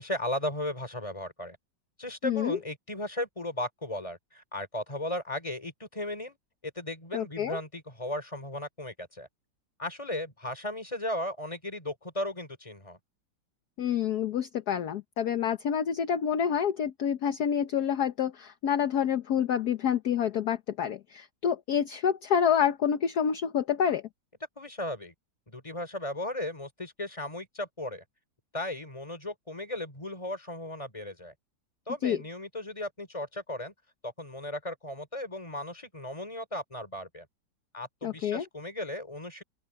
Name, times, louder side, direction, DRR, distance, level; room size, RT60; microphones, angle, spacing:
voice 1, 0.0-1.6 2.0-6.4 6.6-9.3 9.8-13.0 24.6-25.1 25.5-28.0 28.5-31.3 31.9-33.7 34.0-37.3 37.7-39.4, left 1 dB, 15° left, 4.2 m, -36 dB
voice 2, 2.2-2.6 7.1-7.6 13.8-24.0 32.0-32.2 38.0-38.4, left 8 dB, 60° left, 1.5 m, -28 dB
open air
omnidirectional pair, 2.0 m